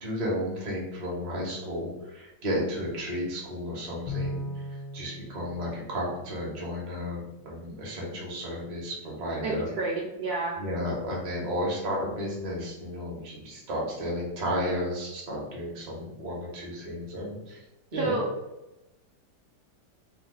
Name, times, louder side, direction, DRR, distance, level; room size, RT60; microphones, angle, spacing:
voice 1, 0.0-4.4 4.9-9.7 10.5-17.6 17.9-18.2, equal, 40° right, -3 dB, 0.6 m, -33 dB
Bowed string instrument, 4.1-6.7, left 1 dB, 80° left, 1.3 m, -38 dB
voice 2, 9.4-10.6 18.0-18.3, right 3 dB, 70° right, -4 dB, 0.9 m, -30 dB
3.1 x 2.2 x 3.5 m, 0.96 s
omnidirectional pair, 2.0 m